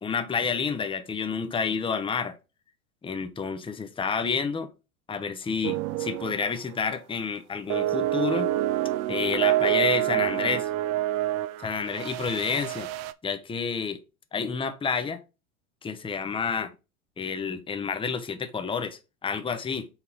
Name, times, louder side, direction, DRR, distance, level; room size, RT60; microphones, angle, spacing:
voice 1, 0.0-2.4 3.0-4.7 5.1-8.5 9.1-10.7 11.6-12.9 13.2-14.0 14.3-15.2 15.8-16.7 17.2-19.9, left 5 dB, 10° left, 0.8 m, -29 dB
sound 1, 5.6-6.4 6.7-7.0 7.7-13.1, right 14 dB, 40° right, 0.5 m, -27 dB
5.8 x 4.2 x 4.1 m
hypercardioid pair, 90°, 43 cm